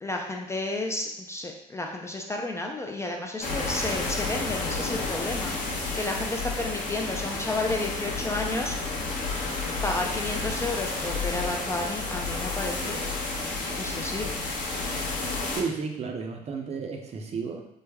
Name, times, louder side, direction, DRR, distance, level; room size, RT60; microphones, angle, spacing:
voice 1, 0.0-9.0 9.8-13.0 13.8-14.4, left 2 dB, 15° left, 1 dB, 0.3 m, -32 dB
sound 1, 3.4-15.6, left 3 dB, 50° left, 0.8 m, -31 dB
voice 2, 15.6-17.7, right 5 dB, 40° right, 3 dB, 0.5 m, -32 dB
3.3 x 2.1 x 3.3 m, 0.82 s
cardioid pair, 110°, 17 cm